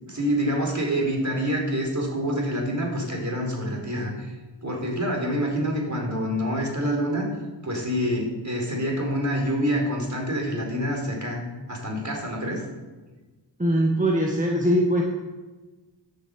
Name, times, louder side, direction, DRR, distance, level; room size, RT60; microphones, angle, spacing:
voice 1, 0.0-4.3 4.6-7.3 7.6-11.4 11.7-12.6, equal, 40° right, -1 dB, 4.5 m, -26 dB
voice 2, 13.6-15.0, equal, 15° right, -1 dB, 1.8 m, -21 dB
10.5 x 8.5 x 8.0 m, 1.2 s
wide cardioid pair, 55°, 44 cm